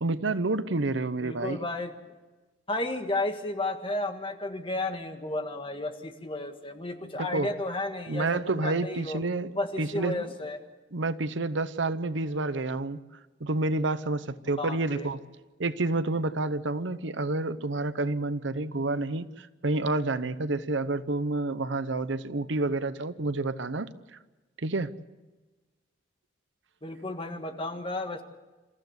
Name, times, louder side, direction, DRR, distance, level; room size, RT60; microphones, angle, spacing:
voice 1, 0.0-1.7 7.2-7.5 8.1-10.3 10.9-13.0 13.4-15.2 15.6-23.9 24.6-24.9, right 2 dB, 70° right, 14 dB, 0.9 m, -29 dB
voice 2, 1.2-1.9 2.7-9.2 9.5-10.6 14.6-15.1 26.8-28.2, left 2 dB, 25° left, 6 dB, 1.7 m, -33 dB
27.5 x 14.5 x 8.0 m, 1.2 s
head